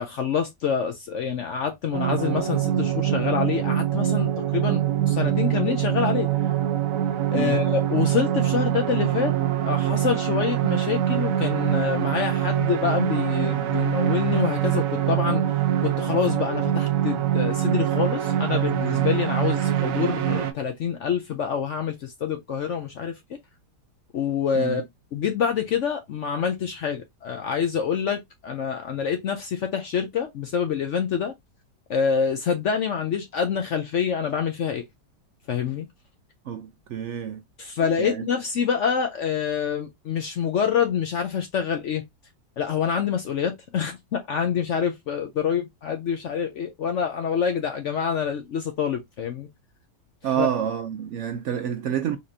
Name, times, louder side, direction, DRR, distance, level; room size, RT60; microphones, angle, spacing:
voice 1, 0.0-6.3 7.3-9.3 9.6-15.4 15.8-23.4 24.1-24.8 25.1-31.3 31.9-34.8 35.5-35.9 37.6-42.0 42.6-49.5 50.4-50.5, left 7 dB, 65° left, 0.7 m, -26 dB
sound 1, 1.9-20.5, right 11 dB, 65° right, 0.9 m, -24 dB
voice 2, 36.5-37.4 38.0-38.3 50.2-52.2, right 9 dB, 90° right, 0.6 m, -28 dB
4.1 x 2.9 x 2.6 m
omnidirectional pair, 1.8 m